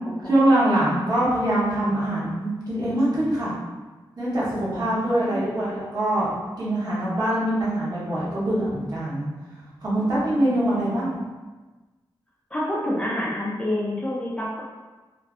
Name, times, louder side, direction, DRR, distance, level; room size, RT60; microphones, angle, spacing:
voice 1, 0.2-3.5 4.2-6.3 6.6-9.3 9.8-11.2, right 1 dB, 50° right, -8 dB, 0.9 m, -23 dB
voice 2, 5.0-5.5 10.5-11.1 12.5-14.6, left 1 dB, 15° left, -5 dB, 0.4 m, -28 dB
2.5 x 2.4 x 2.4 m, 1.2 s
wide cardioid pair, 140°, 9 cm